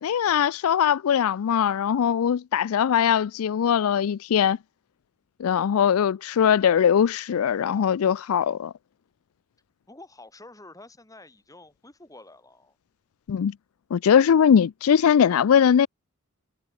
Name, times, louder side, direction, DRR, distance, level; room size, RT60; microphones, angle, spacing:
voice 1, 0.0-4.6 5.4-8.7 13.3-13.5 13.9-15.9, left 8 dB, 70° left, 0.4 m, -21 dB
voice 2, 9.9-12.8, left 2 dB, 15° left, 3.7 m, -48 dB
head